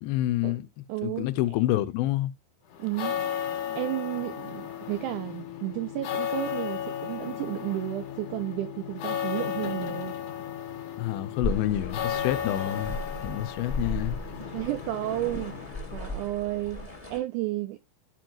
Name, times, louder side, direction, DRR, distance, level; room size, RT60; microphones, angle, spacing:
voice 1, 0.0-2.3 11.0-13.0 13.2-14.2, left 14 dB, 90° left, 2.5 m, -28 dB
voice 2, 0.9-1.3 2.8-3.2 3.7-10.2 14.5-17.8, right 16 dB, 90° right, 1.7 m, -32 dB
sound 1, 2.7-16.3, left 9 dB, 65° left, 2.4 m, -35 dB
sound 2, 11.4-17.2, left 1 dB, 20° left, 0.8 m, -36 dB
13.5 x 4.5 x 2.5 m
omnidirectional pair, 4.1 m